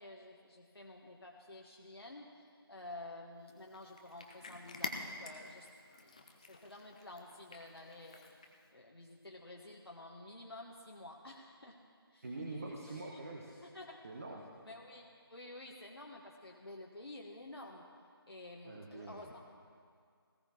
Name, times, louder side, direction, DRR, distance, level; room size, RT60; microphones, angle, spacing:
voice 1, 0.0-2.4 2.7-8.3 8.7-11.8 12.1-12.3 12.7-13.2 13.6-14.0 14.6-17.8 18.3-19.4, left 2 dB, 70° left, -1 dB, 1.4 m, -51 dB
Cat, 3.5-8.7, left 3 dB, 15° left, 0.5 m, -48 dB
voice 2, 12.2-13.6 14.0-14.5 18.6-19.3, right 2 dB, 35° right, 0 dB, 1.1 m, -45 dB
18.5 x 16.5 x 3.0 m, 2.1 s
figure-of-eight pair, 160°, 13 cm